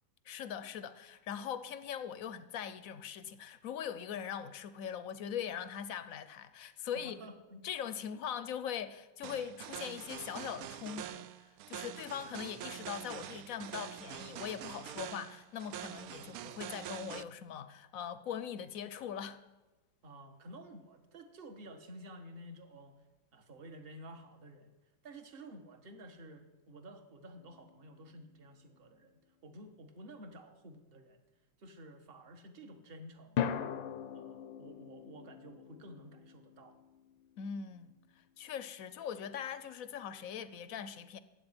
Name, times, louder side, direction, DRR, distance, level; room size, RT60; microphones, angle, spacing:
voice 1, 0.2-7.2 7.6-11.3 11.7-19.4 37.4-37.9 38.4-41.2, left 8 dB, 60° left, 1.0 m, -41 dB
voice 2, 6.9-7.6 20.0-22.9 23.3-24.7 25.0-29.1 29.4-31.2 31.6-33.4 34.1-36.8, right 1 dB, 35° right, 1.4 m, -52 dB
sound 1, 9.2-17.2, right 11 dB, 75° right, 0.8 m, -45 dB
sound 2, 27.4-28.5 33.4-37.7, left 8 dB, 90° left, 1.6 m, -41 dB
13.0 x 8.2 x 9.8 m
omnidirectional pair, 2.1 m